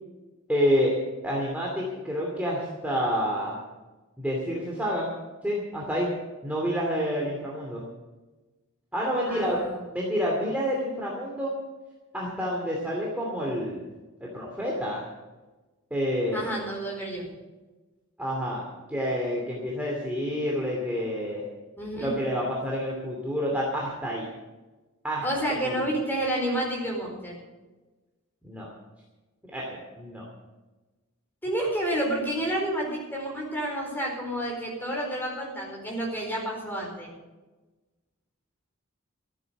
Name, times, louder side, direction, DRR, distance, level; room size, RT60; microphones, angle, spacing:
voice 1, 0.5-0.9 1.2-3.6 4.2-5.1 5.4-6.1 6.4-7.8 8.9-9.6 9.9-11.6 12.1-13.8 14.2-15.1 15.9-16.5 18.2-18.6 18.9-21.4 22.0-24.3 25.0-25.9 28.4-28.7 29.5-30.2, equal, 5° right, -3 dB, 2.5 m, -28 dB
voice 2, 9.3-9.8 16.3-17.3 21.8-22.1 25.2-27.3 31.4-37.1, right 1 dB, 10° left, -1 dB, 4.6 m, -30 dB
14.5 x 9.1 x 8.0 m, 1.2 s
head